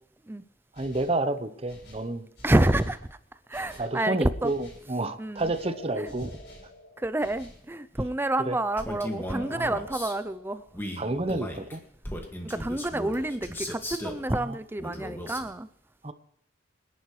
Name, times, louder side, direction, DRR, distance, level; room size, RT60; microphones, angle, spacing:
sound 1, 0.7-1.2 1.7-3.0 3.5-3.9 4.4-4.9 5.3-6.7 7.2-7.7, left 1 dB, 65° left, 5.3 m, -50 dB
voice 1, 0.8-2.2 3.8-6.3 8.4-8.6 9.5-9.7 11.0-11.8 14.3-14.6 16.0-16.1, right 2 dB, 30° right, 11 dB, 0.9 m, -30 dB
voice 2, 2.4-3.2 3.5-4.5 5.2-5.5 5.9-6.3 7.0-10.6 12.4-15.7, right 1 dB, 10° right, 14 dB, 0.5 m, -28 dB
sound 2, 5.6-7.7 9.0-11.1, equal, 80° left, 3.3 m, -47 dB
Male speech man speaking, 8.8-10.2 10.7-14.2 14.8-15.5, equal, 10° left, 1.9 m, -36 dB
25.0 x 10.5 x 3.2 m, 0.71 s
head